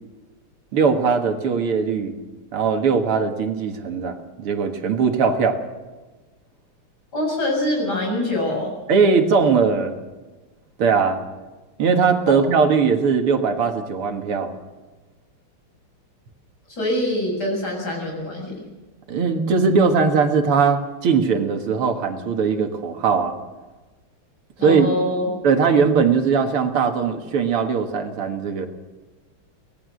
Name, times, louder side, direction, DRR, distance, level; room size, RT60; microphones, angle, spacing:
voice 1, 0.7-2.1 2.5-5.6 8.9-10.0 10.8-11.2 11.8-14.6 19.1-23.4 24.6-24.9 25.4-28.7, right 5 dB, 80° right, 5 dB, 2.6 m, -20 dB
voice 2, 7.1-8.7 12.3-12.4 16.7-18.6 24.6-25.3, left 1 dB, 45° left, 0 dB, 7.6 m, -24 dB
24.5 x 18.5 x 6.4 m, 1.2 s
omnidirectional pair, 2.4 m